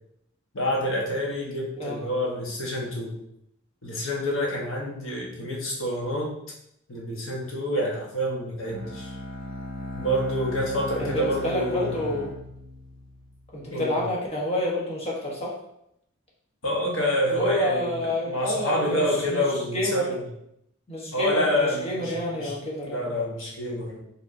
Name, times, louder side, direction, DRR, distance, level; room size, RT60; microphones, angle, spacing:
voice 1, 0.5-3.2 3.8-6.3 6.9-9.2 9.9-12.2 13.7-14.1 16.6-17.9 18.3-20.2 21.1-24.0, equal, 75° left, -2 dB, 1.1 m, -27 dB
Bowed string instrument, 8.6-13.6, left 1 dB, 50° left, 1.5 m, -37 dB
voice 2, 11.0-12.3 13.5-15.5 17.3-19.4 19.7-20.0 20.9-23.1, left 1 dB, 30° left, -4 dB, 1.0 m, -29 dB
4.9 x 3.3 x 2.6 m, 0.77 s
head